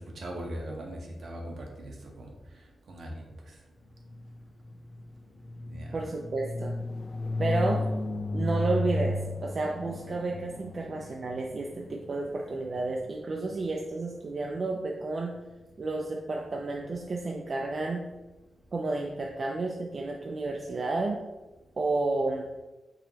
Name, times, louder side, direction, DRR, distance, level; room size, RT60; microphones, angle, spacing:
voice 1, 0.0-2.3 2.9-3.3 5.7-6.0 7.8-7.9, right 1 dB, 70° right, 0 dB, 0.9 m, -40 dB
sound 1, 4.0-13.9, left 2 dB, 40° left, 0.3 m, -34 dB
voice 2, 5.9-6.7 7.4-7.8 8.3-15.4 15.8-18.1 18.7-21.2 21.8-22.5, right 3 dB, 50° right, 0 dB, 0.4 m, -31 dB
4.7 x 3.0 x 2.8 m, 1.1 s
cardioid pair, 95°, 0 cm